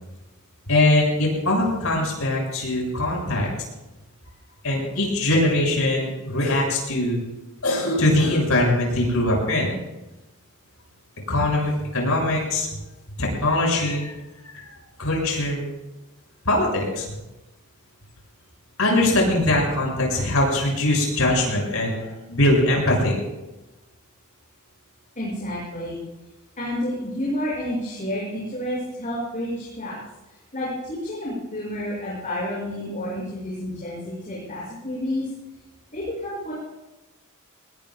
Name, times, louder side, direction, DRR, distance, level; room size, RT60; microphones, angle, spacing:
voice 1, 0.7-3.5 4.6-7.2 7.6-9.7 11.3-12.7 13.2-14.1 14.5-14.6 15.0-15.7 16.4-17.0 18.8-23.2, left 1 dB, 80° left, -1 dB, 6.8 m, -22 dB
voice 2, 25.1-26.0 26.6-30.0 30.5-35.3 35.9-36.5, left 1 dB, 35° left, -7 dB, 6.5 m, -30 dB
22.5 x 20.0 x 2.3 m, 1.0 s
head